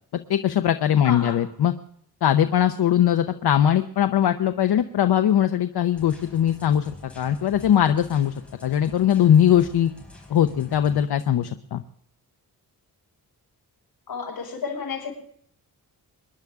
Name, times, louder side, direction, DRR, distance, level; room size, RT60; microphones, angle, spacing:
voice 1, 0.3-1.7 2.2-8.3 8.6-9.9 10.3-11.8, left 10 dB, 90° left, 8 dB, 0.8 m, -20 dB
voice 2, 1.0-1.4 14.1-15.1, left 6 dB, 70° left, -1 dB, 5.9 m, -31 dB
sound 1, 5.9-11.0, left 1 dB, 5° left, 4.5 m, -46 dB
25.5 x 11.0 x 3.6 m, 0.66 s
wide cardioid pair, 165°, 38 cm